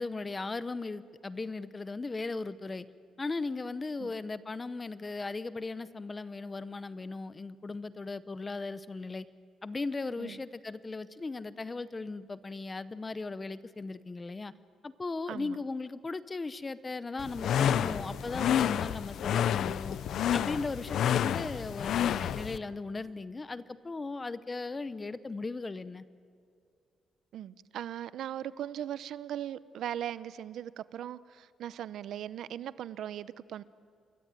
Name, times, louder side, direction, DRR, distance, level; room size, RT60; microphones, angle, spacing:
voice 1, 0.0-2.9 3.2-9.3 9.6-14.5 14.8-20.0 20.3-26.0, left 3 dB, 20° left, 0.8 m, -37 dB
sound 1, 17.2-22.6, left 9 dB, 70° left, 0.7 m, -29 dB
voice 2, 27.3-33.6, right 11 dB, 75° right, 0.8 m, -39 dB
27.5 x 23.0 x 9.1 m
cardioid pair, 140°, 0 cm